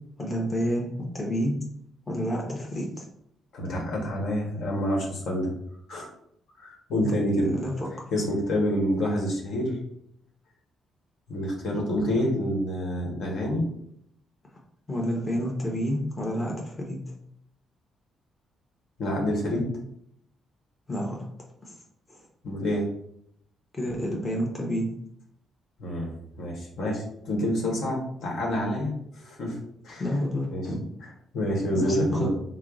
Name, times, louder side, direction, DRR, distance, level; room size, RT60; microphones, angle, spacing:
voice 1, 0.2-1.6 2.1-3.0 7.0-7.2 7.4-8.1 14.9-17.0 20.9-21.3 21.6-21.8 22.1-22.2 23.7-24.9 30.0-30.9 31.7-32.3, equal, 20° left, -2 dB, 1.0 m, -29 dB
voice 2, 3.5-5.5 5.9-6.1 6.6-7.5 8.1-9.8 11.3-13.7 19.0-19.7 22.4-22.9 25.8-26.1 26.4-29.6 29.8-30.0 30.5-30.7 31.3-32.3, equal, 70° left, -1 dB, 1.2 m, -27 dB
4.5 x 2.0 x 3.7 m, 0.72 s
cardioid pair, 90°, 0 cm